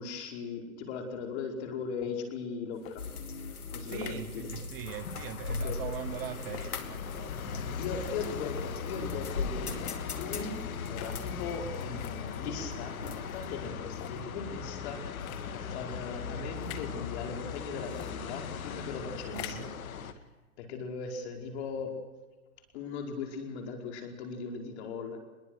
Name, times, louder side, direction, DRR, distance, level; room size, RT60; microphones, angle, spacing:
voice 1, 0.0-3.0 3.7-4.5 5.6-5.8 7.7-9.8 10.0-10.6 10.9-19.7 20.6-22.0 22.7-25.2, left 5 dB, 45° left, 5.0 m, -39 dB
sound 1, 2.7-3.0 3.8-4.2 5.0-5.3 6.4-6.7 7.9-8.3 9.6-10.0 10.9-11.2 12.0-12.2 12.9-13.0 13.9-14.2 15.2-15.4 16.6-16.9 17.9-18.1 19.2-19.7, left 11 dB, 30° left, 1.9 m, -45 dB
sound 2, 3.0-13.7, left 4 dB, 90° left, 3.0 m, -40 dB
voice 2, 3.8-8.1 19.3-19.8, right 11 dB, 40° right, 1.1 m, -42 dB
sound 3, 4.9-20.1, left 6 dB, 70° left, 2.2 m, -39 dB
24.0 x 22.0 x 6.4 m
hypercardioid pair, 140°, 43 cm